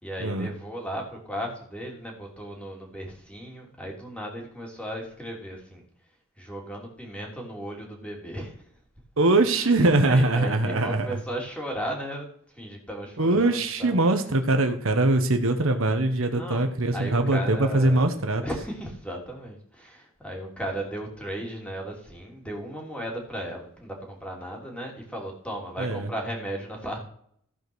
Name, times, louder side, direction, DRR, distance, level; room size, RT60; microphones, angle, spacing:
voice 1, 0.0-5.8 6.4-8.7 9.5-12.3 12.5-14.0 16.3-16.6 16.9-18.1 18.4-27.0, right 1 dB, 5° left, -1 dB, 2.9 m, -35 dB
voice 2, 9.2-11.1 13.2-18.4 25.8-26.1, right 2 dB, 65° right, 7 dB, 1.2 m, -22 dB
15.5 x 5.1 x 6.2 m, 0.64 s
head